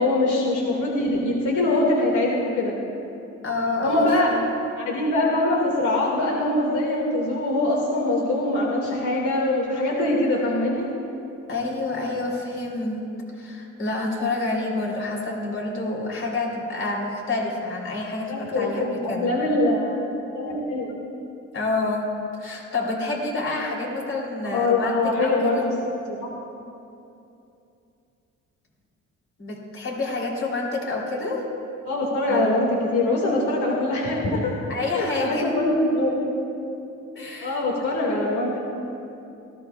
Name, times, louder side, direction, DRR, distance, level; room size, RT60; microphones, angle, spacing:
voice 1, 0.0-2.7 3.8-4.3 4.8-10.9 18.3-19.9 20.3-20.9 24.5-25.7 26.1-26.3 31.9-34.6 34.9-36.3 37.4-38.6, left 2 dB, 80° left, -3 dB, 2.2 m, -23 dB
voice 2, 3.4-4.5 11.5-13.1 13.3-19.3 21.5-22.1 22.4-25.7 29.4-31.4 32.3-32.5 34.7-35.5 37.1-37.7, left 2 dB, 45° left, -2 dB, 3.5 m, -28 dB
19.0 x 14.5 x 2.4 m, 2.7 s
cardioid pair, 90°, 30 cm